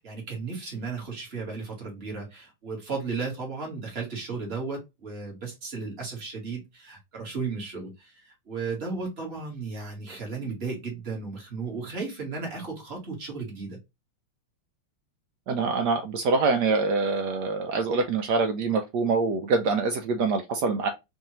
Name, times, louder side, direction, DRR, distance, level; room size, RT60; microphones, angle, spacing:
voice 1, 0.0-13.8, right 4 dB, 30° right, 1.6 m, -35 dB
voice 2, 15.5-20.9, right 4 dB, 80° right, 0.9 m, -25 dB
4.6 x 2.7 x 2.8 m
omnidirectional pair, 2.4 m